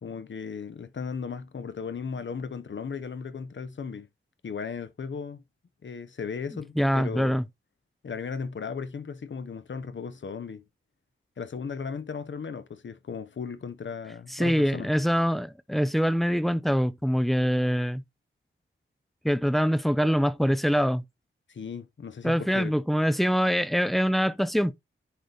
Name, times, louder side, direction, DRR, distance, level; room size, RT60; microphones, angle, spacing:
voice 1, 0.0-4.1 4.4-5.4 5.8-7.4 8.0-10.6 11.4-14.9 21.5-22.8, left 5 dB, 60° left, 0.9 m, -36 dB
voice 2, 6.5-7.4 14.3-18.0 19.2-21.0 22.2-24.7, equal, ahead, 0.5 m, -24 dB
10.0 x 4.0 x 3.3 m
wide cardioid pair, 125°, 21 cm